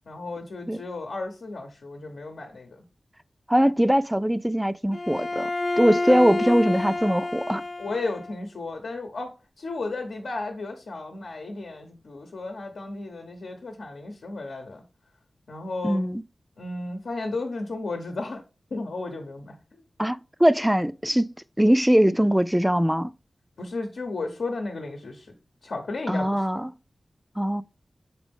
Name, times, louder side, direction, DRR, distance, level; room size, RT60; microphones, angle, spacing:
voice 1, 0.1-2.8 6.1-6.6 7.8-9.3 9.6-14.8 15.5-16.0 16.6-18.4 18.7-19.5 23.6-25.3 25.6-26.7, left 3 dB, 90° left, 1.0 m, -34 dB
voice 2, 3.5-5.5 5.8-7.6 15.8-16.2 20.0-23.1 26.1-26.7 27.4-27.6, equal, 5° right, 0.3 m, -21 dB
Bowed string instrument, 4.9-8.4, left 2 dB, 45° left, 0.5 m, -29 dB
6.2 x 4.3 x 3.5 m
wide cardioid pair, 70°, 0 cm